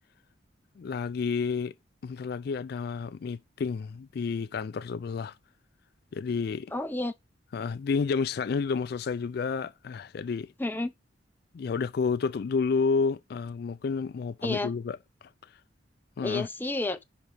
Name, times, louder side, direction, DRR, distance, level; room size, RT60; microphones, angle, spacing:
voice 1, 0.8-1.7 2.0-5.4 6.1-6.7 7.5-10.5 11.5-15.3 16.2-16.5, left 5 dB, 55° left, 0.3 m, -30 dB
voice 2, 6.7-7.1 10.6-10.9 14.4-14.7 16.2-17.0, left 2 dB, 10° left, 0.7 m, -30 dB
10.5 x 3.9 x 3.4 m
head